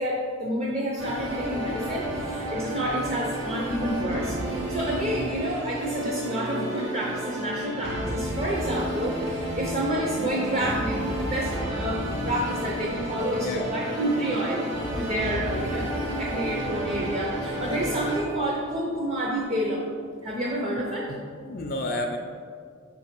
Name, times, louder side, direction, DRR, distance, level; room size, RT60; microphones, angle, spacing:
voice 1, 0.0-14.6 15.0-19.9 20.2-21.1, right 1 dB, 30° right, -2 dB, 0.6 m, -29 dB
sound 1, 1.0-18.2, right 1 dB, 60° right, 1.2 m, -31 dB
voice 2, 13.3-13.8 21.1-21.2 21.5-22.2, left 1 dB, 45° left, 3 dB, 0.4 m, -31 dB
6.3 x 3.9 x 4.4 m, 2.1 s
head